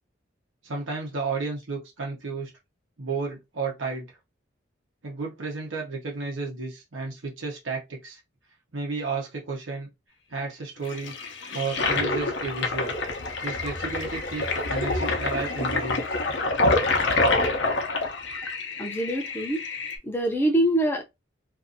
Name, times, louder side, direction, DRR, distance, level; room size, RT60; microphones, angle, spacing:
voice 1, 0.6-2.5 3.0-4.2 5.0-8.2 8.7-9.9 10.3-11.1 11.5-12.9 13.4-16.0, right 4 dB, 85° right, 0.9 m, -32 dB
Toilet flush, 10.9-20.0, left 2 dB, 65° left, 0.6 m, -27 dB
voice 2, 18.8-19.6 20.0-21.0, right 1 dB, 10° left, 0.5 m, -24 dB
2.6 x 2.5 x 2.5 m
head